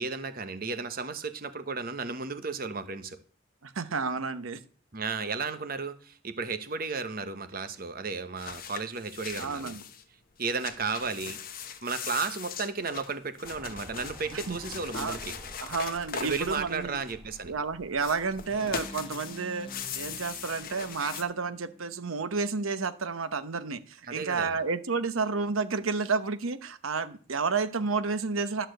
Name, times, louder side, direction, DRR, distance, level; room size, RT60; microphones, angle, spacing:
voice 1, 0.0-3.2 4.9-9.8 10.4-11.4 11.8-15.3 16.2-17.5 24.1-24.6, right 4 dB, 45° right, 10 dB, 1.0 m, -34 dB
voice 2, 3.6-4.6 9.4-9.8 14.5-14.6 14.9-15.2 15.6-17.0 17.4-28.7, right 4 dB, 90° right, 12 dB, 0.9 m, -31 dB
sound 1, 8.4-10.0 10.4-17.4 17.9-21.2, left 7 dB, 45° left, 1.0 m, -40 dB
sound 2, 13.4-18.7, equal, 20° right, 2.8 m, -49 dB
sound 3, 18.5-22.6, left 1 dB, 25° left, 0.7 m, -49 dB
11.5 x 4.5 x 7.7 m, 0.42 s
head